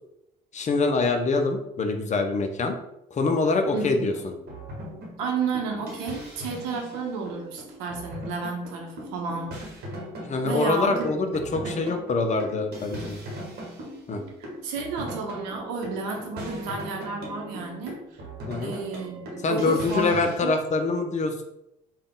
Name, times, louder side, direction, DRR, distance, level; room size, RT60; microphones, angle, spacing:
voice 1, 0.5-2.8 3.1-4.3 10.2-13.2 14.1-14.2 18.5-18.8 19.4-21.4, left 3 dB, 35° left, 6 dB, 0.6 m, -25 dB
sound 1, 3.5-20.4, equal, 50° right, 1.1 m, -40 dB
voice 2, 3.7-4.1 5.2-9.5 10.4-11.3 11.6-11.9 14.4-18.2 18.6-20.6, right 4 dB, 70° right, 2 dB, 0.8 m, -32 dB
3.6 x 2.4 x 3.7 m, 0.84 s
hypercardioid pair, 50°, 21 cm